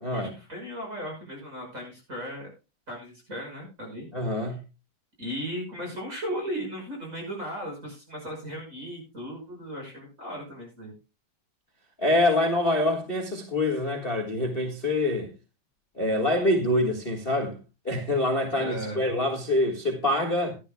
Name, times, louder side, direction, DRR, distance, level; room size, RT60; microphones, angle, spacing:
voice 1, 0.1-2.5 2.9-4.4 5.2-10.9 18.6-19.0, equal, 25° right, 5.9 m, -36 dB
voice 2, 4.1-4.6 12.0-15.3 16.0-17.6 17.8-20.5, left 1 dB, 30° left, 1.1 m, -25 dB
17.0 x 11.0 x 2.2 m
omnidirectional pair, 3.7 m